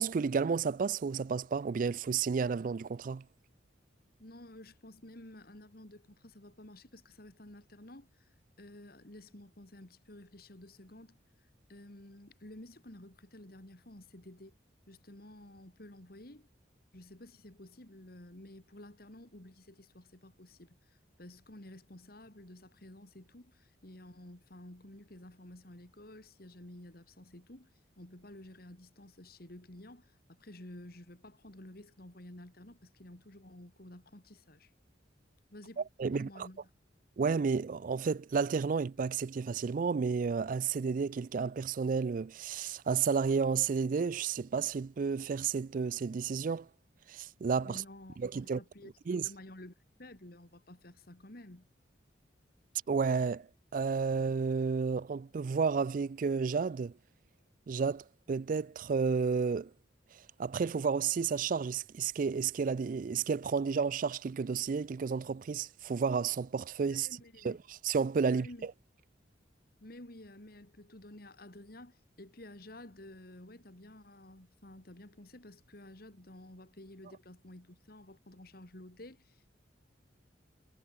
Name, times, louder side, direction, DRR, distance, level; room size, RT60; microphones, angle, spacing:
voice 1, 0.0-3.2 36.0-36.3 37.2-46.7 47.1-47.8 48.2-48.6 49.1-49.3 52.9-53.5 53.7-56.9 57.7-59.7 60.4-67.1 67.4-67.6 67.8-68.5, right 5 dB, 45° right, 0.3 m, -31 dB
voice 2, 4.2-11.2 11.7-14.5 14.9-16.5 16.9-27.7 28.0-34.7 35.5-36.6 47.6-49.7 50.0-51.7 66.9-67.6 68.3-68.7 69.8-79.4, left 1 dB, 55° left, 2.6 m, -52 dB
head